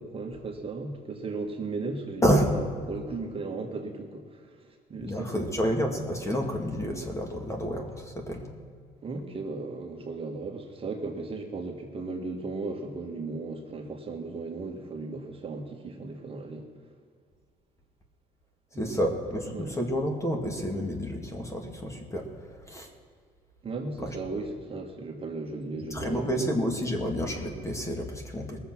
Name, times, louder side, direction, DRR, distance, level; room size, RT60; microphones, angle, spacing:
voice 1, 0.0-4.2 4.9-5.4 9.0-16.7 19.5-19.7 23.6-26.5, right 3 dB, 35° right, 2 dB, 1.7 m, -36 dB
voice 2, 5.0-8.5 18.8-22.3 22.7-22.9 24.0-24.2 25.9-28.6, equal, 15° left, 2 dB, 1.9 m, -29 dB
20.0 x 7.2 x 6.1 m, 2.1 s
cardioid pair, 110°, 17 cm